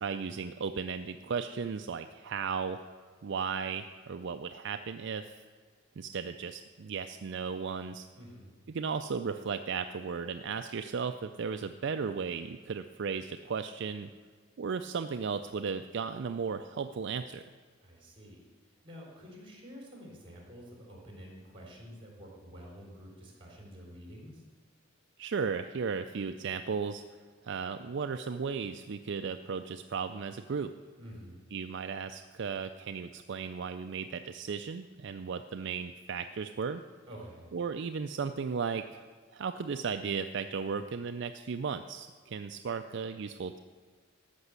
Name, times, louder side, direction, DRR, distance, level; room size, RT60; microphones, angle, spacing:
voice 1, 0.0-2.8 3.2-5.4 6.0-8.1 8.7-14.1 14.6-17.4 25.2-27.0 27.4-30.7 31.5-36.8 37.5-39.0 39.3-43.6, right 5 dB, 60° right, 7 dB, 0.4 m, -35 dB
voice 2, 8.1-8.5 17.8-18.4 18.8-24.4 31.0-31.4 37.1-37.5, equal, 25° right, -1 dB, 3.8 m, -49 dB
13.5 x 6.1 x 8.1 m, 1.5 s
head